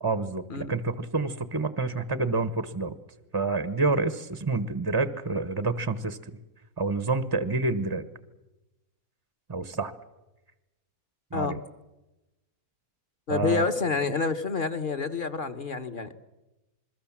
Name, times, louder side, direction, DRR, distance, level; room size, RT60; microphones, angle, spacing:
voice 1, 0.0-2.9 3.3-6.2 6.8-8.0 9.5-9.9 11.3-11.6 13.3-13.7, right 3 dB, 20° right, 12 dB, 0.7 m, -28 dB
voice 2, 13.3-16.1, left 5 dB, 35° left, 8 dB, 1.2 m, -28 dB
27.0 x 21.5 x 7.3 m, 1.0 s
omnidirectional pair, 1.6 m